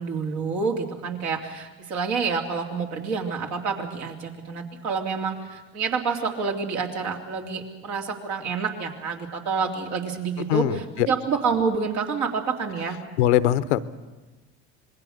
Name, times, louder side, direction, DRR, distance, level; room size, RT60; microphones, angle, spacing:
voice 1, 0.0-13.0, right 5 dB, 70° right, 2 dB, 3.2 m, -28 dB
voice 2, 10.5-11.1 13.2-13.8, left 13 dB, 85° left, 16 dB, 0.9 m, -21 dB
26.0 x 21.0 x 6.5 m, 1.2 s
hypercardioid pair, 80°, 33 cm